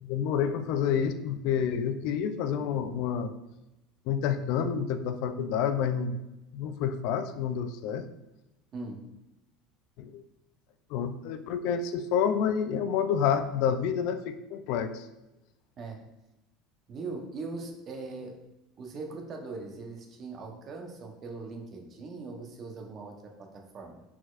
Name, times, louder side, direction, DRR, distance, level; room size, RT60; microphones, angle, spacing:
voice 1, 0.0-3.3 4.1-6.2 6.5-8.1 10.0-10.2 10.9-15.1, left 7 dB, 70° left, 9 dB, 0.3 m, -29 dB
voice 2, 8.7-9.1 15.8-16.0 16.9-18.4 18.8-24.0, right 3 dB, 40° right, 3 dB, 0.8 m, -40 dB
4.3 x 4.2 x 2.4 m, 0.94 s
supercardioid pair, 105°, 0 cm